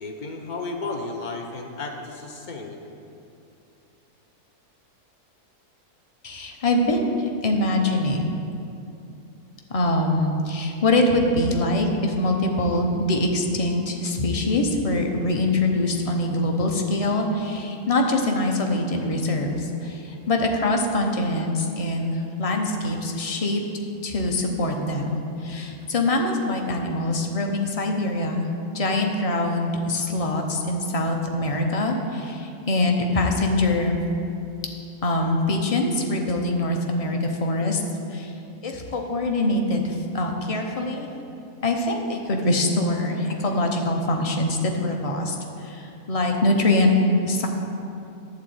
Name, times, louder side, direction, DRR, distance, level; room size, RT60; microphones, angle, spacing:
voice 1, 0.0-2.8, left 3 dB, 85° left, 2 dB, 0.4 m, -33 dB
voice 2, 6.2-8.3 9.7-23.6 24.0-28.5 28.7-34.0 35.0-37.8 38.1-38.3 38.6-41.1 41.6-47.0 47.2-47.5, left 2 dB, 35° left, 2 dB, 0.6 m, -24 dB
11.5 x 4.0 x 7.9 m, 2.7 s
omnidirectional pair, 1.7 m